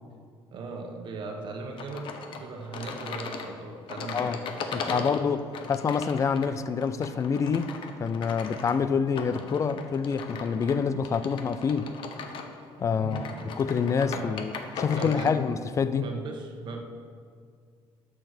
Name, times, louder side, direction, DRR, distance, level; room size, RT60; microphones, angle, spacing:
voice 1, 0.5-5.1 12.9-13.5 14.1-14.3 14.9-15.4 16.0-16.8, right 3 dB, 55° right, 2 dB, 1.4 m, -38 dB
sound 1, 1.8-15.4, left 5 dB, 60° left, 1.1 m, -39 dB
voice 2, 4.7-5.4 5.7-7.7 8.0-11.9 12.8-13.3 13.6-16.0, left 6 dB, 30° left, 13 dB, 0.5 m, -27 dB
12.0 x 6.4 x 6.7 m, 2.1 s
cardioid pair, 140°, 10 cm